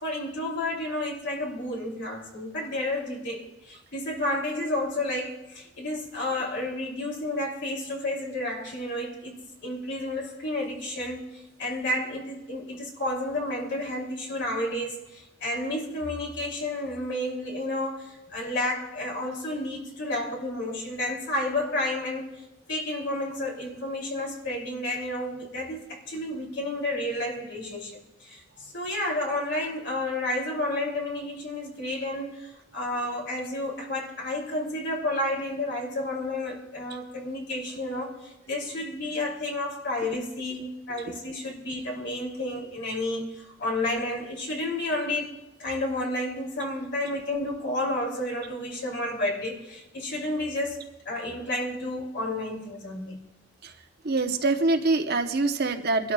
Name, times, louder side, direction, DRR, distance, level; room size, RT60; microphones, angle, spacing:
voice 1, 0.0-11.2 11.6-22.3 22.7-28.0 28.2-28.4 28.7-38.1 38.5-43.3 43.6-45.3 45.6-50.8 51.0-53.2, left 1 dB, 65° left, -1 dB, 3.2 m, -31 dB
voice 2, 54.0-56.1, right 3 dB, 55° right, 5 dB, 1.0 m, -25 dB
25.5 x 12.5 x 2.4 m, 0.96 s
head